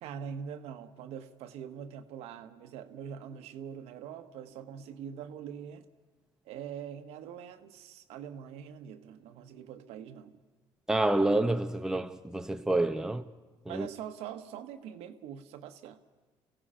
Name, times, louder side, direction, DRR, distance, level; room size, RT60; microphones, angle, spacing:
voice 1, 0.0-5.9 6.4-10.4 13.7-16.0, right 8 dB, 80° right, 1.4 m, -43 dB
voice 2, 10.9-13.3 13.7-13.9, right 2 dB, 5° right, 0.9 m, -28 dB
28.0 x 16.5 x 5.8 m
cardioid pair, 105°, 10 cm